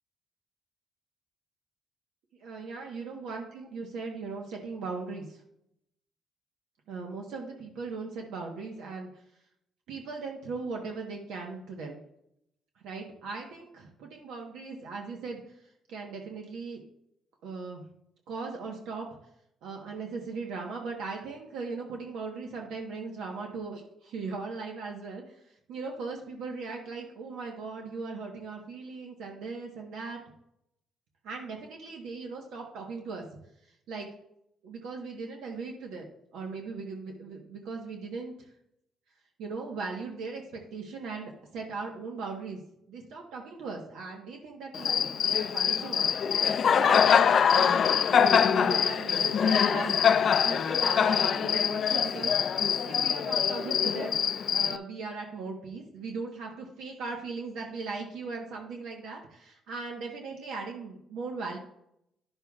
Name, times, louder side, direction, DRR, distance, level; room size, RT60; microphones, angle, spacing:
voice 1, 2.3-5.4 6.9-9.2 9.9-12.0 12.8-15.5 15.9-16.8 17.4-17.8 18.3-19.1 19.6-30.2 31.2-33.2 33.6-34.1 34.6-38.5 39.4-42.6 42.9-46.1 46.4-47.0 47.5-50.1 50.4-54.2 54.5-61.6, right 4 dB, 85° right, 1 dB, 1.1 m, -38 dB
Cricket, 44.7-54.8, left 7 dB, 55° left, 0.4 m, -24 dB
10.5 x 6.7 x 2.4 m, 0.77 s
cardioid pair, 90°, 0 cm